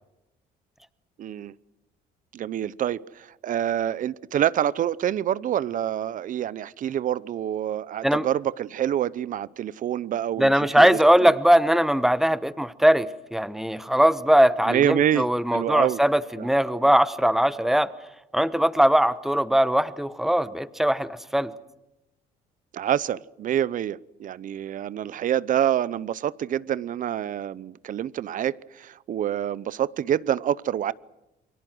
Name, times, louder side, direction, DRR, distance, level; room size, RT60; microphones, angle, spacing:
voice 1, 1.2-1.5 2.3-11.3 14.6-16.0 16.4-16.5 22.7-30.9, right 10 dB, 50° right, 19 dB, 0.8 m, -27 dB
voice 2, 10.4-17.9 18.3-21.5, equal, ahead, 14 dB, 1.1 m, -20 dB
29.5 x 23.5 x 6.3 m, 0.94 s
cardioid pair, 110°, 17 cm